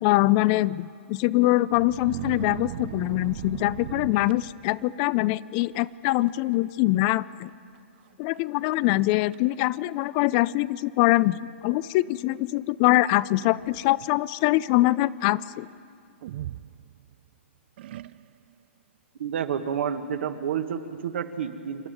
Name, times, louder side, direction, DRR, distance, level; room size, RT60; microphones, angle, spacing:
voice 1, 0.0-7.5 8.2-11.4 11.6-15.7, left 18 dB, 35° left, 18 dB, 0.4 m, -23 dB
sound 1, 1.7-5.0 5.6-5.9 6.2-6.6 6.9-7.0 7.7-7.8 8.4-8.5 9.0-9.4 10.2-10.3 13.2-14.2 16.2-17.3 17.8-18.5, right 13 dB, 55° right, 0.5 m, -38 dB
voice 2, 19.2-21.9, right 8 dB, 70° right, 8 dB, 1.6 m, -29 dB
27.5 x 11.5 x 9.2 m, 2.4 s
hypercardioid pair, 145°, 7 cm